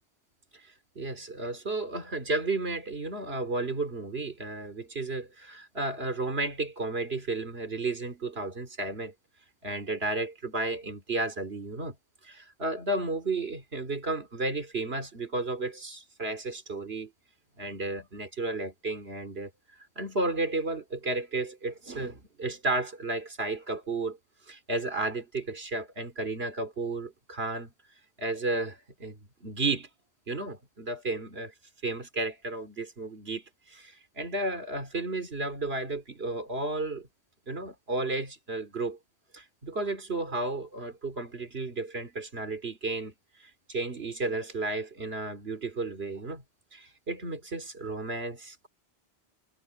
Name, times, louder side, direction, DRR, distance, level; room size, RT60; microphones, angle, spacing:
voice 1, 1.0-9.1 9.6-11.9 12.2-17.1 17.6-19.5 20.0-24.2 24.5-27.7 28.2-29.9 30.3-31.5 31.8-33.4 33.7-37.1 37.5-39.0 39.3-43.1 43.7-46.4 46.7-48.7, right 2 dB, 70° right, 3.0 m, -33 dB
omnidirectional pair, 1.1 m